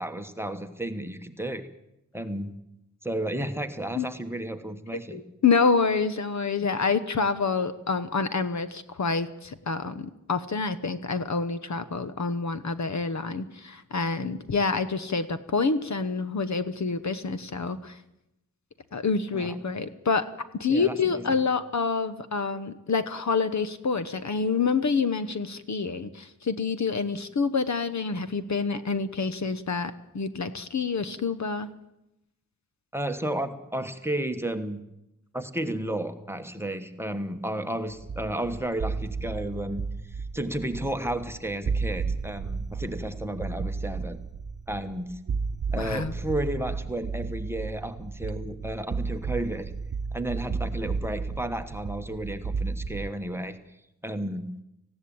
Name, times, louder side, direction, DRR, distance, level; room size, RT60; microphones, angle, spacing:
voice 1, 0.0-1.7 2.1-2.5 3.0-5.2 19.3-19.7 20.7-21.4 32.9-34.8 35.3-44.2 44.7-45.2 45.7-49.7 50.1-53.6 54.0-54.6, right 1 dB, 5° right, 7 dB, 1.3 m, -32 dB
voice 2, 5.1-18.0 18.9-20.2 20.6-31.7 45.8-46.1, left 4 dB, 55° left, 13 dB, 1.1 m, -27 dB
sound 1, 38.0-53.1, right 4 dB, 45° right, 1.0 m, -33 dB
19.0 x 16.0 x 8.7 m, 0.86 s
wide cardioid pair, 145°, 34 cm